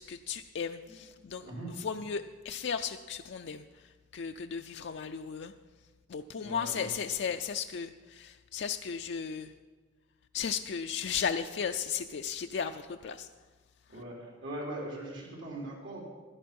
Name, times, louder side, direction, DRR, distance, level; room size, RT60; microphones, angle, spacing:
voice 1, 0.0-5.5 6.1-9.5 10.3-13.3, left 7 dB, 60° left, 6 dB, 0.4 m, -35 dB
voice 2, 6.3-6.9 13.9-16.0, right 1 dB, 85° right, -2 dB, 3.9 m, -40 dB
13.0 x 10.5 x 5.3 m, 1.3 s
head